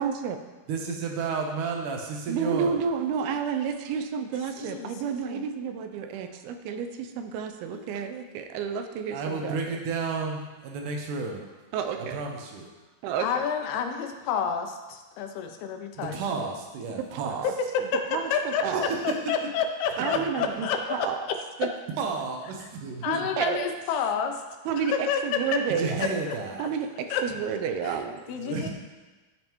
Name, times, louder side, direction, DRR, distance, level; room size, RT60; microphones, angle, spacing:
voice 1, 0.0-0.4 2.3-9.6 11.7-12.2 13.0-13.5 17.0-17.5 18.1-19.0 20.0-21.2 21.6-21.7 23.0-23.7 24.7-26.2 26.6-28.2, right 7 dB, 85° right, 7 dB, 2.5 m, -30 dB
voice 2, 0.7-2.8 9.1-11.4 12.0-12.7 16.0-17.4 22.0-23.3 25.8-26.7 28.3-28.7, right 4 dB, 70° right, 2 dB, 2.2 m, -32 dB
voice 3, 4.6-5.5 7.7-7.9 13.2-16.5 17.4-21.4 23.0-24.4 24.9-25.6 26.0-26.7 27.1-27.2 27.8-28.0 28.3-28.7, left 6 dB, 85° left, 5 dB, 2.7 m, -30 dB
13.0 x 5.3 x 3.0 m, 1.2 s
omnidirectional pair, 4.4 m